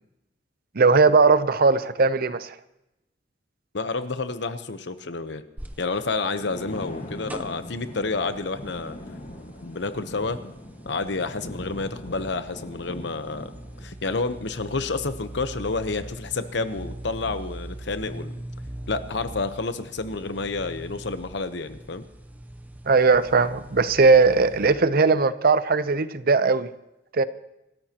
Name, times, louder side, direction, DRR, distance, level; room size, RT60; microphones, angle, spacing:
voice 1, 0.8-2.5 22.9-26.7 27.1-27.2, right 4 dB, 55° right, 14 dB, 0.7 m, -19 dB
voice 2, 3.7-5.4 5.8-9.0 9.6-10.4 10.9-13.5 13.8-18.4 18.9-22.0, left 3 dB, 70° left, 11 dB, 0.9 m, -29 dB
sound 1, 5.6-24.7, right 1 dB, 10° right, 0.7 m, -41 dB
Thunder, 6.1-13.9, left 1 dB, 40° left, 1.6 m, -41 dB
26.5 x 13.5 x 3.0 m, 0.90 s
head